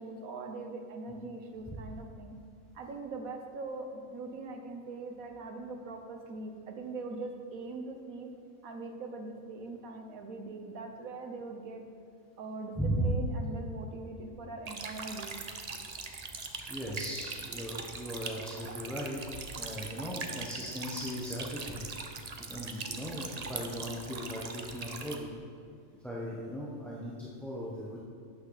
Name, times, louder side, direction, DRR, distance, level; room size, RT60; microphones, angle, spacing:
voice 1, 0.0-2.4 2.7-8.3 8.6-11.8 12.4-15.3, right 3 dB, 80° right, 4 dB, 1.5 m, -41 dB
voice 2, 12.8-13.1 16.1-16.2 16.7-21.8 22.4-25.3 26.0-28.0, equal, ahead, -6 dB, 1.0 m, -37 dB
sound 1, 14.7-25.2, right 4 dB, 40° right, 0.6 m, -41 dB
12.0 x 9.0 x 4.1 m, 2.2 s
omnidirectional pair, 1.4 m